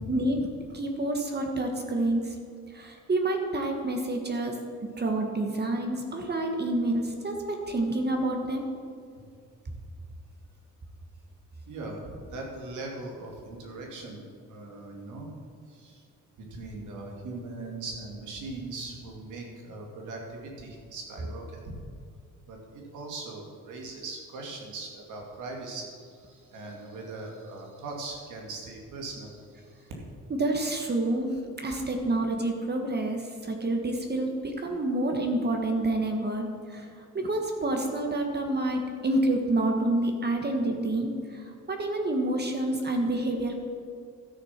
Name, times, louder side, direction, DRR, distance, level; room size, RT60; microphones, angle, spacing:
voice 1, 0.1-2.3 2.7-4.5 5.0-8.7 30.4-31.3 31.6-36.9 37.1-43.6, right 2 dB, 35° right, 3 dB, 1.5 m, -28 dB
voice 2, 11.7-15.3 15.7-16.0 16.4-21.8 22.5-29.9, right 2 dB, 80° right, 0 dB, 2.4 m, -40 dB
13.0 x 6.6 x 5.9 m, 2.1 s
cardioid pair, 90°, 30 cm